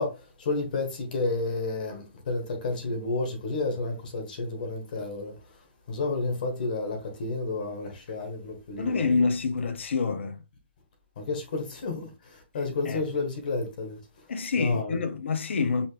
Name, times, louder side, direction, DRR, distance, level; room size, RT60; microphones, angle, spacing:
voice 1, 0.0-5.3 5.9-9.1 11.2-14.0 14.6-15.1, left 3 dB, 45° left, 1.5 m, -31 dB
voice 2, 8.8-10.4 12.9-13.0 14.3-15.9, left 4 dB, 80° left, 0.8 m, -27 dB
5.5 x 3.0 x 3.3 m
hypercardioid pair, 175°, 6 cm